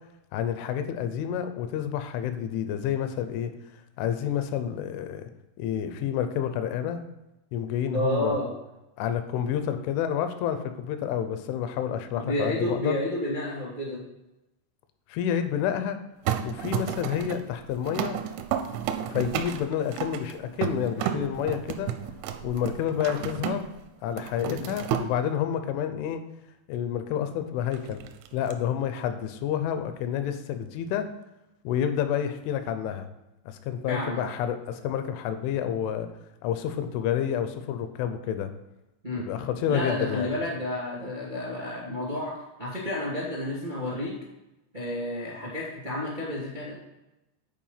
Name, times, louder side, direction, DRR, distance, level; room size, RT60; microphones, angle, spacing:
voice 1, 0.3-3.5 4.0-5.3 5.6-7.0 7.5-8.4 9.0-13.0 15.1-16.0 16.4-18.2 19.1-21.9 22.4-23.7 24.0-26.2 26.7-28.0 28.3-31.1 31.6-33.1 33.5-36.1 36.4-38.5 39.1-40.3, left 9 dB, 80° left, 8 dB, 3.0 m, -29 dB
voice 2, 7.9-8.5 12.2-14.0 24.4-24.6 33.9-34.2 39.0-39.3 39.7-44.1 44.7-46.7, left 1 dB, 45° right, -5 dB, 0.5 m, -30 dB
sound 1, 16.3-23.8 24.1-25.1 27.7-28.5, right 9 dB, 85° right, 3.0 m, -32 dB
10.0 x 4.6 x 5.6 m, 0.96 s
omnidirectional pair, 5.8 m